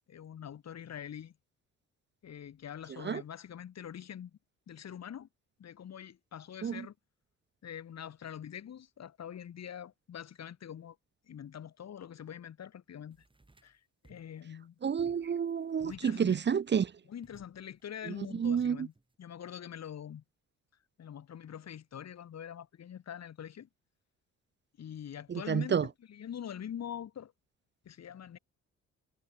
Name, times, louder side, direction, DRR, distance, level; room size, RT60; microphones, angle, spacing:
voice 1, 0.1-1.3 2.2-4.4 4.7-5.3 5.6-6.9 7.6-11.0 11.3-13.2 13.6-14.8 15.8-16.4 17.1-18.9 19.2-20.2 21.0-23.7 24.8-27.3 27.8-28.4, left 9 dB, 60° left, 5.5 m, -44 dB
sound 1, 13.1-13.8 14.0-14.4 15.0-15.5 15.8-16.6 17.2-17.8 18.4-19.1, right 2 dB, 15° right, 7.9 m, -61 dB
voice 2, 14.8-16.9 18.3-18.9 25.3-25.8, right 7 dB, 35° right, 0.9 m, -29 dB
cardioid pair, 90°, 30 cm